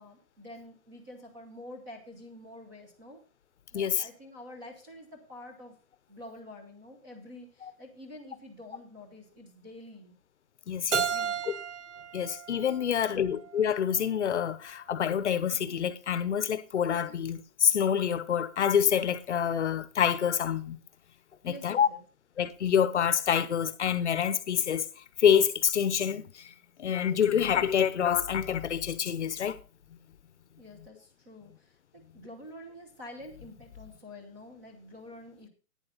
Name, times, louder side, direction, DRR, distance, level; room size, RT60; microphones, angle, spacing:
voice 1, 0.0-3.2 3.7-5.8 6.1-10.2 10.9-11.4 12.8-13.4 21.4-22.0 30.6-35.5, left 1 dB, 15° right, 1.0 m, -48 dB
voice 2, 3.7-4.1 10.7-11.1 11.5-11.6 12.1-20.8 21.4-21.9 22.4-26.5 26.8-29.6, left 8 dB, 55° left, 0.9 m, -27 dB
Keyboard (musical), 10.9-13.7, right 7 dB, 55° right, 0.7 m, -34 dB
11.0 x 9.0 x 4.0 m
hypercardioid pair, 175°, 43 cm